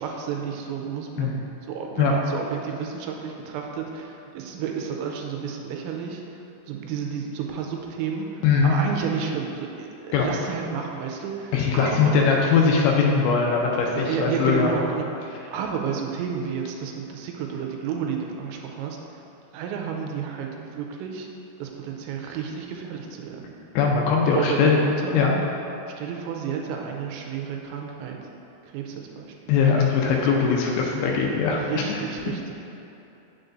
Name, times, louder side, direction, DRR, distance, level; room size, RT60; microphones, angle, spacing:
voice 1, 0.0-6.2 6.7-12.2 13.9-19.0 19.5-21.3 21.6-23.6 24.3-25.2 26.0-28.2 28.6-29.6 30.0-30.2 31.5-32.5, right 7 dB, 85° right, 1 dB, 2.9 m, -31 dB
voice 2, 8.4-8.7 10.1-10.3 11.5-14.7 23.8-24.8 25.1-25.4 29.5-31.6 31.9-32.0, left 5 dB, 90° left, -1 dB, 2.9 m, -20 dB
7.8 x 6.7 x 2.6 m, 2.9 s
omnidirectional pair, 5.1 m